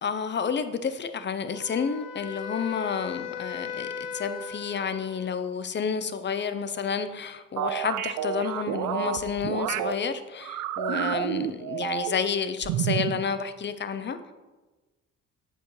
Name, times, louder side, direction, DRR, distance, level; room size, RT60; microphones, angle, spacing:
voice 1, 0.0-14.3, left 6 dB, 35° left, 11 dB, 0.6 m, -30 dB
Wind instrument woodwind instrument, 1.5-5.6, left 6 dB, 85° left, 0.9 m, -38 dB
sound 1, 7.6-9.9 10.4-12.3 12.6-13.2, right 12 dB, 75° right, 0.5 m, -29 dB
7.6 x 7.1 x 3.2 m, 1.2 s
cardioid pair, 90°, 30 cm